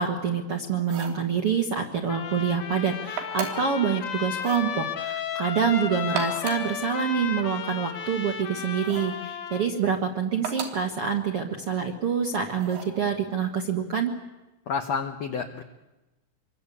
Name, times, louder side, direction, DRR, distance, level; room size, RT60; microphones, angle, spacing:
voice 1, 0.0-14.1, right 6 dB, 60° right, 3 dB, 1.5 m, -26 dB
sound 1, 0.8-1.3 3.2-3.8 4.4-4.7 6.0-6.7 8.8-9.2 10.4-10.9 12.6-13.0, right 7 dB, 85° right, 5.4 m, -35 dB
Trumpet, 2.1-9.7, left 8 dB, 60° left, 2.3 m, -34 dB
voice 2, 14.7-15.6, left 5 dB, 75° left, 6 dB, 1.5 m, -29 dB
26.0 x 23.5 x 8.5 m, 1.1 s
omnidirectional pair, 4.9 m